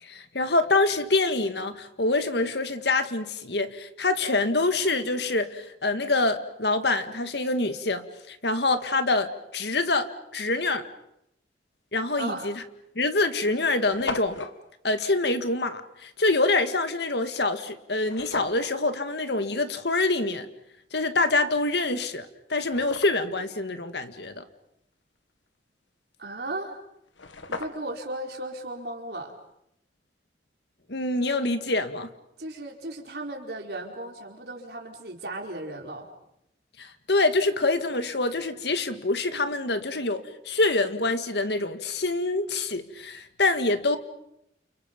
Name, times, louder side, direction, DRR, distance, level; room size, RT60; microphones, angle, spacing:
voice 1, 0.0-10.9 11.9-12.6 13.0-14.4 14.8-20.5 20.9-24.4 30.9-32.1 36.8-44.0, left 2 dB, 65° left, 9 dB, 1.9 m, -26 dB
voice 2, 12.2-12.5 26.2-26.8 27.5-29.3 32.4-36.1, right 2 dB, 60° right, 2 dB, 4.4 m, -36 dB
sound 1, 12.4-12.5 13.1-13.2 13.4-13.5 13.7-14.6 18.0-18.7 21.6-21.7 22.2-23.4 26.7-26.8 27.1-28.1, left 3 dB, 90° left, 1.7 m, -36 dB
30.0 x 29.5 x 5.4 m, 0.78 s
head